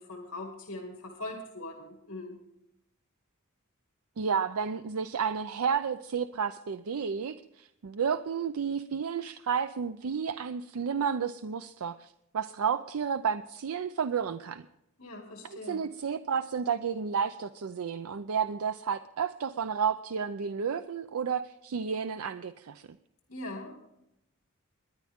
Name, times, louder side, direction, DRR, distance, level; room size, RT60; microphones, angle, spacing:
voice 1, 0.0-2.4 15.0-15.8 23.3-23.7, left 2 dB, 65° left, 1 dB, 2.2 m, -41 dB
voice 2, 4.2-14.6 15.4-22.9, right 6 dB, 80° right, 12 dB, 0.5 m, -31 dB
21.5 x 10.5 x 3.6 m, 0.83 s
head